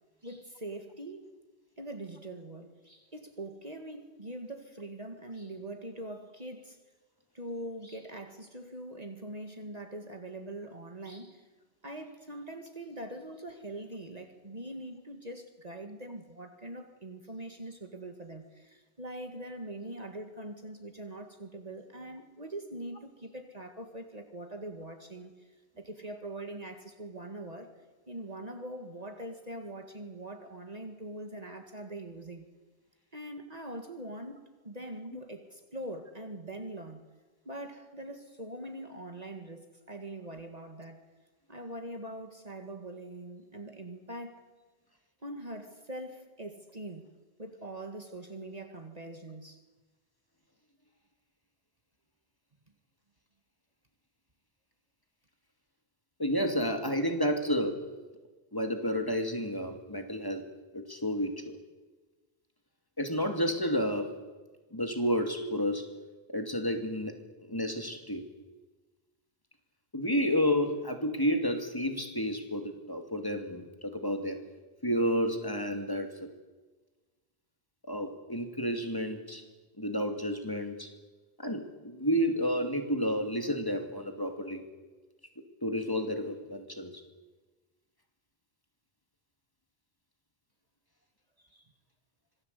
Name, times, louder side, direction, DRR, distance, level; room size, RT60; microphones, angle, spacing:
voice 1, 0.2-1.3 1.8-6.8 7.3-11.5 11.8-25.3 25.8-27.7 28.1-32.5 33.1-37.0 37.5-41.0 41.5-44.4 45.2-47.0 47.4-49.6 91.5-91.6, right 1 dB, 35° right, 2.1 m, -43 dB
voice 2, 56.2-57.8 58.5-60.5 60.7-61.6 63.0-64.1 64.7-65.9 66.3-67.2 67.5-68.3 69.9-74.4 74.8-76.3 77.9-79.4 79.8-80.9 81.4-84.7 85.6-87.0, equal, 20° left, 2.5 m, -31 dB
26.0 x 18.5 x 8.3 m
omnidirectional pair, 1.1 m